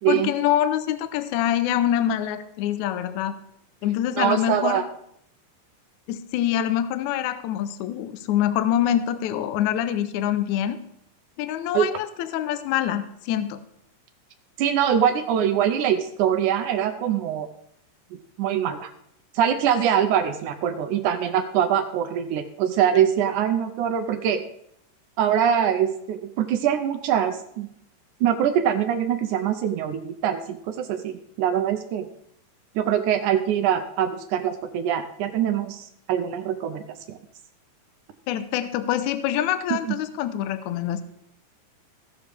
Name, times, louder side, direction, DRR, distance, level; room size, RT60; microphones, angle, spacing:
voice 1, 0.1-3.3 3.8-4.8 6.1-10.8 11.4-13.6 38.3-41.0, left 11 dB, 80° left, 11 dB, 1.8 m, -25 dB
voice 2, 4.2-4.8 11.7-11.9 14.6-17.5 18.4-18.9 19.4-24.5 25.2-27.7 28.2-32.1 32.8-36.8 37.1-37.2 39.9-40.0, right 9 dB, 75° right, 8 dB, 1.9 m, -23 dB
16.5 x 6.4 x 3.4 m, 0.73 s
omnidirectional pair, 3.9 m